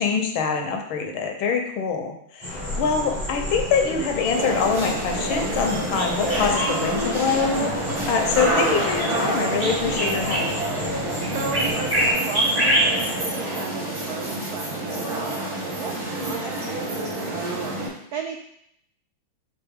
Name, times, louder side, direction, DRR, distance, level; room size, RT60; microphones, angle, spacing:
voice 1, 0.0-10.5, left 5 dB, 80° left, 3 dB, 1.6 m, -24 dB
sound 1, 2.4-13.2, equal, 20° right, 1.5 m, -28 dB
sound 2, 2.5-12.1, left 3 dB, 40° left, 0.8 m, -36 dB
sound 3, 4.3-17.9, right 1 dB, 70° right, 3.6 m, -28 dB
voice 2, 11.3-18.4, right 6 dB, 90° right, 3 dB, 0.8 m, -35 dB
6.8 x 3.8 x 3.6 m, 0.73 s
omnidirectional pair, 2.2 m